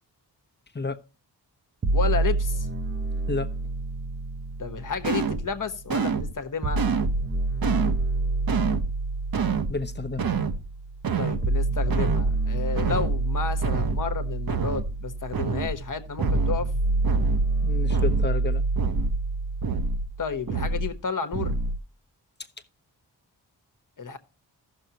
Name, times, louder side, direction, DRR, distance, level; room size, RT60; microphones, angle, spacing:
sound 1, 1.8-5.8 6.6-20.7, right 3 dB, 25° right, 0.8 m, -27 dB
voice 1, 1.9-2.7 4.6-6.8 11.2-16.7 20.2-21.6 24.0-24.2, left 5 dB, 50° left, 1.3 m, -31 dB
sound 2, 5.0-5.5 5.9-6.3 6.8-7.2 7.6-8.0 8.5-8.9 9.3-9.8 10.2-10.6 11.0-11.5 11.9-12.3 12.8-13.2 13.6-14.0 14.5-14.9 15.3-15.8 16.2-16.6 17.0-17.5 17.9-18.3 18.8-19.2 19.6-20.1 20.5-20.9 21.3-21.8, right 5 dB, 55° right, 1.0 m, -27 dB
voice 2, 9.7-10.3 17.6-18.6, left 3 dB, 25° left, 0.9 m, -31 dB
15.0 x 6.5 x 2.9 m
wide cardioid pair, 90°, 41 cm